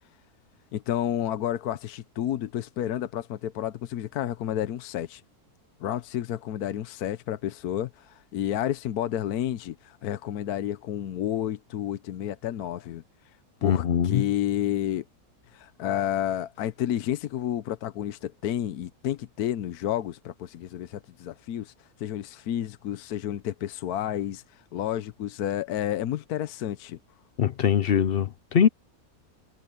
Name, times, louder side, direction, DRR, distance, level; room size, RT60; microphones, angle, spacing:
voice 1, 0.7-5.2 5.8-13.0 13.6-15.0 15.5-21.7 22.0-27.0, left 11 dB, 75° left, 1.2 m, -30 dB
voice 2, 13.6-14.2 27.4-28.7, left 8 dB, 55° left, 0.6 m, -22 dB
omnidirectional pair, 1.6 m